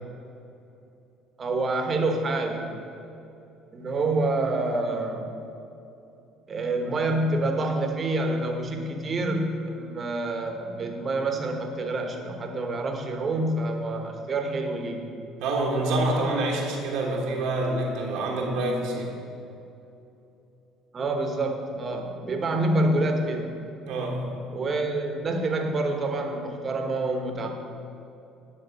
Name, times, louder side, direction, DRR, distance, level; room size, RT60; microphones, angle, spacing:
voice 1, 1.4-2.7 3.7-5.3 6.5-15.1 20.9-23.5 24.5-27.5, right 2 dB, 40° right, 4 dB, 1.2 m, -27 dB
voice 2, 15.4-19.1 23.9-24.3, right 2 dB, 70° right, -2 dB, 1.2 m, -26 dB
10.5 x 3.6 x 7.0 m, 2.8 s
hypercardioid pair, 65°, 0 cm